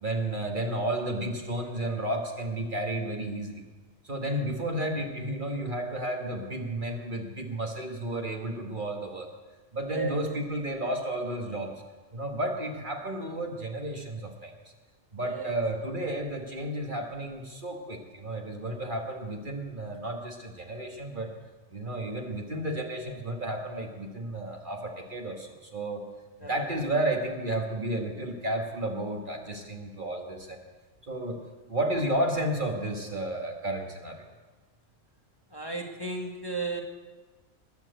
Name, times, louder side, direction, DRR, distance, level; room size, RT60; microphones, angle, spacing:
voice 1, 0.0-3.6 4.0-9.3 9.7-11.8 12.1-14.5 15.1-21.3 21.7-26.0 26.4-30.6 31.0-31.4 31.7-34.3, right 1 dB, 40° right, 2 dB, 1.6 m, -32 dB
voice 2, 9.9-10.2 15.3-15.4 26.4-26.6 35.5-36.8, right 4 dB, 20° left, 1 dB, 1.3 m, -34 dB
20.5 x 7.3 x 7.9 m, 1.3 s
omnidirectional pair, 1.4 m